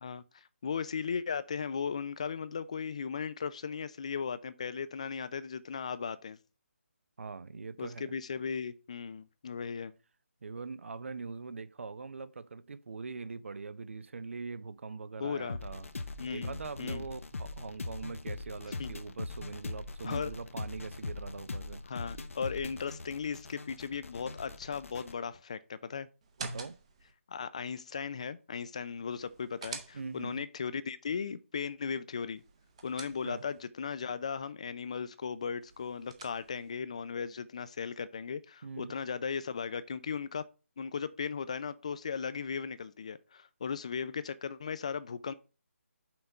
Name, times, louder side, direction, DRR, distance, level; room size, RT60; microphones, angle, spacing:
voice 1, 0.0-6.4 7.8-9.9 15.2-15.6 16.2-17.0 18.8-18.9 20.0-20.3 21.9-26.1 27.3-32.4 32.8-40.5 40.8-45.3, left 6 dB, 25° left, 0.4 m, -37 dB
voice 2, 7.2-8.1 10.4-15.9 16.3-21.8 26.4-26.8 29.9-30.4 33.2-33.4 38.6-38.9, right 4 dB, 60° right, 0.6 m, -42 dB
sound 1, 15.5-25.1, left 3 dB, 65° left, 0.8 m, -41 dB
sound 2, 26.2-27.1 29.1-30.4 32.4-33.6 35.6-36.7, right 4 dB, 25° right, 0.8 m, -46 dB
5.8 x 3.7 x 5.3 m
hypercardioid pair, 175°, 8 cm